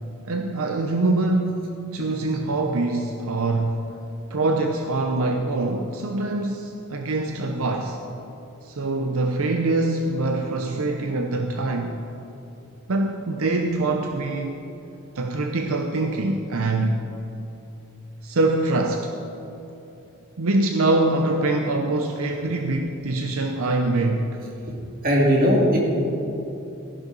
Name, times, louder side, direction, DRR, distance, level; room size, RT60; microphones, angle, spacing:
voice 1, 0.2-3.8 4.3-8.0 8.6-12.0 12.9-14.6 15.1-17.0 18.2-19.1 20.4-24.4, right 2 dB, 75° right, 4 dB, 0.7 m, -24 dB
voice 2, 25.0-25.8, equal, 40° right, -2 dB, 2.4 m, -18 dB
15.0 x 11.0 x 4.0 m, 2.9 s
head